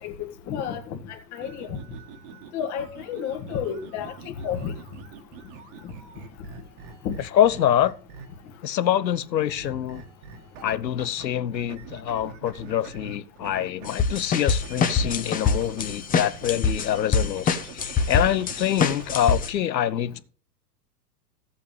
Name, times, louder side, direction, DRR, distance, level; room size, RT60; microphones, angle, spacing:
voice 1, 0.0-1.8 2.5-4.7 5.8-5.9 7.0-7.1, left 8 dB, 35° left, 1.9 m, -31 dB
sound 1, 1.3-8.5 9.6-11.2 11.5-16.0 16.3-19.4, right 6 dB, 45° right, 1.9 m, -45 dB
voice 2, 7.3-7.9 8.6-10.0 10.6-20.2, left 11 dB, 85° left, 0.9 m, -25 dB
sound 2, 13.9-19.5, left 5 dB, 15° left, 1.0 m, -24 dB
14.0 x 8.4 x 3.3 m
hypercardioid pair, 120°, 50 cm